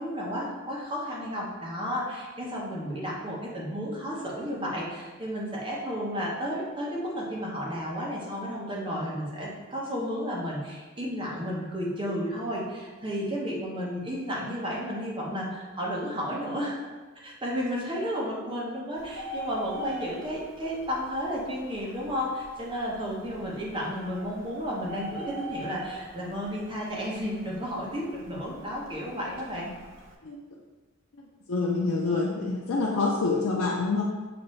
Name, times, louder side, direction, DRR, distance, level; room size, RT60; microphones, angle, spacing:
voice 1, 0.0-16.8 17.2-29.7, equal, 20° right, -4 dB, 0.8 m, -32 dB
Bird, 19.0-30.1, equal, 60° right, 0.5 m, -43 dB
voice 2, 31.5-34.0, left 3 dB, 75° left, -2 dB, 0.5 m, -26 dB
5.9 x 2.6 x 3.1 m, 1.3 s
head